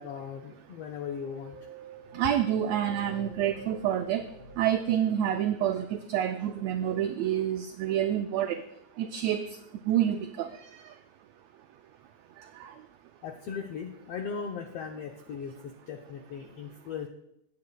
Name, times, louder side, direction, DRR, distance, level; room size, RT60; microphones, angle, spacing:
voice 1, 0.0-1.6 13.2-17.1, left 6 dB, 85° left, 4 dB, 1.3 m, -38 dB
sound 1, 1.1-5.8, right 1 dB, 30° left, 1.0 m, -48 dB
voice 2, 2.1-4.3 4.6-8.6 9.0-9.5 9.9-10.5 12.6-12.7, right 10 dB, 90° right, 8 dB, 1.5 m, -28 dB
18.0 x 8.5 x 2.2 m, 0.79 s
omnidirectional pair, 3.5 m